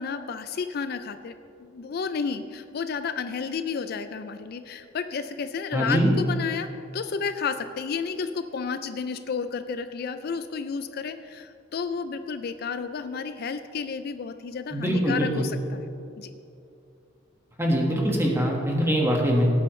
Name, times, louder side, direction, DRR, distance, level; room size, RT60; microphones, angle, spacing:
voice 1, 0.0-6.7 6.9-15.9 16.2-16.3, left 5 dB, 50° left, 10 dB, 0.4 m, -31 dB
voice 2, 5.7-6.1 14.7-15.5 17.6-19.5, equal, 15° right, -1 dB, 1.5 m, -23 dB
17.5 x 8.5 x 3.2 m, 2.7 s
head